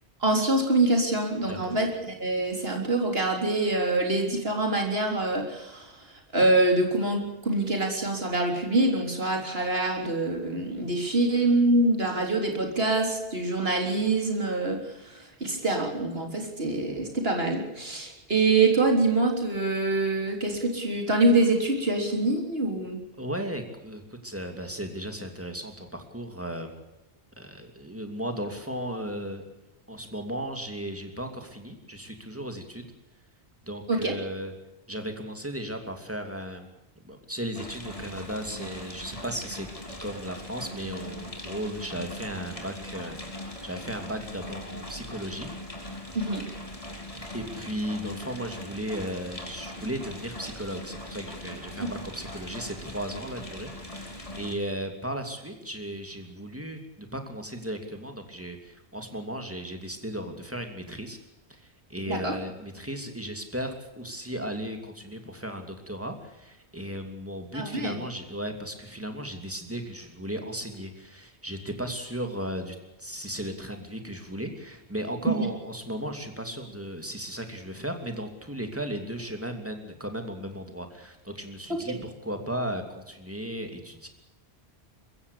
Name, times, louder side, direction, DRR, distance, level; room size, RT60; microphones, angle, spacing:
voice 1, 0.2-5.9 6.3-23.0 33.9-34.1 46.1-46.4 51.8-51.9 62.1-62.3 67.5-68.0 75.3-75.5 81.7-82.0, right 2 dB, 65° right, 2 dB, 3.9 m, -25 dB
voice 2, 23.2-26.8 27.4-29.4 29.9-32.9 33.7-34.5 34.9-36.7 37.0-39.7 40.0-45.5 47.1-61.2 61.5-84.1, equal, 10° right, 5 dB, 2.8 m, -36 dB
sound 1, 37.5-54.5, left 1 dB, 30° left, 3.3 m, -40 dB
22.5 x 15.5 x 8.5 m, 1.0 s
omnidirectional pair, 1.1 m